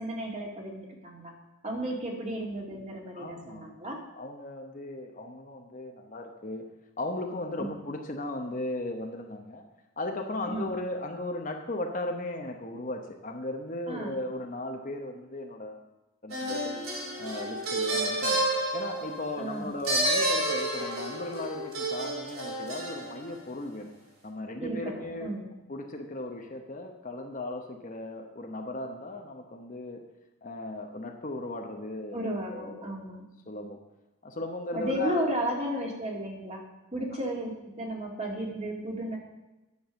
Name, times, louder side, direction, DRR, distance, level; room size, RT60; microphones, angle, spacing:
voice 1, 0.0-1.3 1.6-4.0 7.6-7.7 10.5-10.7 13.9-14.2 19.4-19.7 24.6-25.5 32.1-33.2 34.7-36.6 36.9-39.2, right 1 dB, 30° right, -1 dB, 2.2 m, -34 dB
voice 2, 3.1-3.7 4.1-6.7 7.0-9.7 10.0-15.8 16.2-16.9 17.2-18.4 18.7-23.9 24.2-25.3 25.7-30.0 30.4-32.9 33.5-33.8 34.2-35.3, left 2 dB, 35° left, 3 dB, 0.9 m, -36 dB
sound 1, 16.3-23.3, right 1 dB, 70° right, 2.8 m, -30 dB
10.5 x 7.0 x 7.0 m, 1.0 s
head